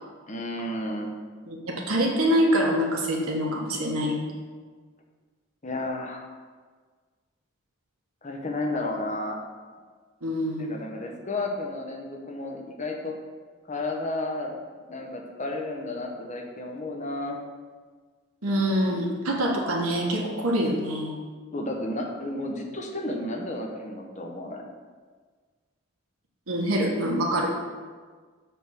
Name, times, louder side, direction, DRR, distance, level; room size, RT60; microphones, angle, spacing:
voice 1, 0.3-1.1 5.6-6.3 8.2-9.4 10.6-13.1 13.7-14.5 14.9-17.4 21.5-24.6, left 2 dB, 35° left, 1 dB, 0.8 m, -32 dB
voice 2, 1.4-4.2 10.2-10.8 18.4-21.1 26.5-27.5, equal, 85° right, -1 dB, 1.3 m, -25 dB
6.9 x 3.5 x 6.3 m, 1.5 s
head